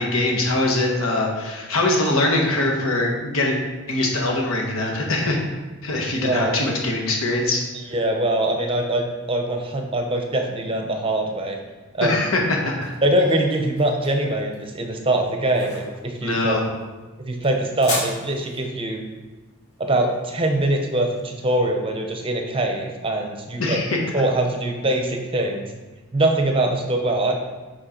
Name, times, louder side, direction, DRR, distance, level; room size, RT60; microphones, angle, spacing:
voice 1, 0.0-3.6 3.9-5.4 5.8-7.6 12.0-12.9 16.2-16.6 23.6-24.0, left 2 dB, 70° left, 0 dB, 1.4 m, -22 dB
voice 2, 6.2-6.5 7.7-11.6 11.9-12.3 13.0-16.7 17.3-19.0 19.8-23.8 24.1-25.7 26.1-27.3, right 1 dB, 25° right, 3 dB, 0.8 m, -23 dB
sound 1, 12.3-21.3, left 2 dB, 30° left, 2.3 m, -37 dB
7.6 x 4.4 x 4.4 m, 1.2 s
head